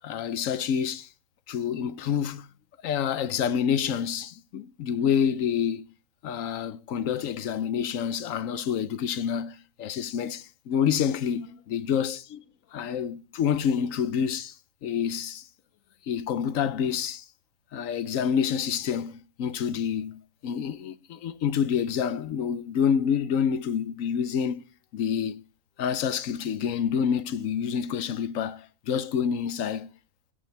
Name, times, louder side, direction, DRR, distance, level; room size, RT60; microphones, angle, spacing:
voice 1, 0.0-1.1 1.5-2.5 2.8-5.8 6.2-12.5 12.7-14.5 14.8-15.5 16.1-17.2 17.7-24.6 24.9-25.4 25.8-29.9, left 8 dB, 75° left, 1.1 m, -28 dB
16.5 x 6.3 x 3.2 m
omnidirectional pair, 1.4 m